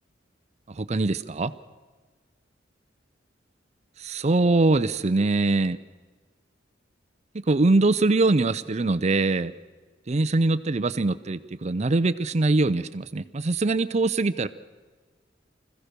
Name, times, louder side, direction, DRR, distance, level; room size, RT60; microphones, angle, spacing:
voice 1, 0.7-1.5 4.0-5.8 7.3-9.5 10.1-14.5, right 2 dB, 35° right, 13 dB, 0.6 m, -23 dB
25.5 x 15.5 x 6.7 m, 1.4 s
head